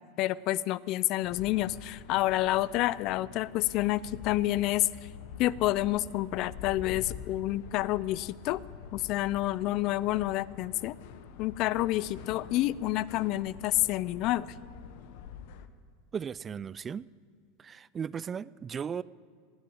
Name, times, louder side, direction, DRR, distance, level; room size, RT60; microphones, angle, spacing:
voice 1, 0.2-4.9 5.4-8.6 8.9-11.0 11.4-14.5, left 16 dB, 50° left, 20 dB, 0.4 m, -29 dB
sound 1, 1.2-15.7, left 7 dB, 70° left, 0.9 m, -46 dB
voice 2, 16.1-17.1 17.6-19.0, right 7 dB, 25° right, 20 dB, 0.3 m, -36 dB
18.5 x 7.7 x 8.6 m, 2.2 s
hypercardioid pair, 110°, 0 cm